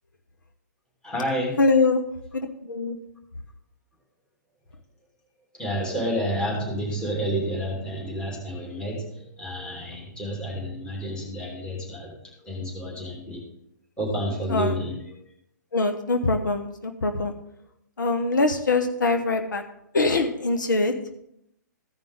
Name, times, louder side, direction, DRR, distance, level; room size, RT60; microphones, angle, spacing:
voice 1, 1.0-1.6 5.6-12.1 12.4-13.4 14.0-14.9, equal, 10° left, -4 dB, 2.8 m, -30 dB
voice 2, 1.6-2.0 2.3-3.0 14.5-14.7 15.7-17.3 18.0-19.6 19.9-20.9, left 3 dB, 80° left, 6 dB, 1.0 m, -23 dB
15.5 x 5.3 x 3.5 m, 0.78 s
hypercardioid pair, 130°, 10 cm